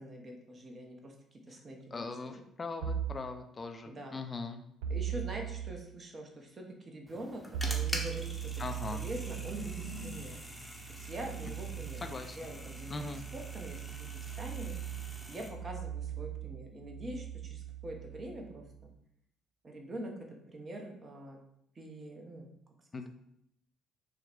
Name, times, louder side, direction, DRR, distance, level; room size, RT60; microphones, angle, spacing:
voice 1, 0.0-2.4 3.9-4.2 4.9-10.3 10.9-12.0 12.3-14.8 15.3-18.7 19.6-21.4 21.7-22.5, right 1 dB, 35° right, 2 dB, 1.0 m, -44 dB
voice 2, 1.9-4.6 8.6-9.0 12.0-12.4 12.9-13.2 22.9-23.1, left 3 dB, 30° left, 6 dB, 0.5 m, -40 dB
sound 1, 2.8-3.3 4.8-5.8 7.5-18.9, right 9 dB, 70° right, 0.4 m, -40 dB
sound 2, 7.1-15.5, left 1 dB, ahead, 1.0 m, -45 dB
5.9 x 2.4 x 3.4 m, 0.75 s
figure-of-eight pair, 50°, 0 cm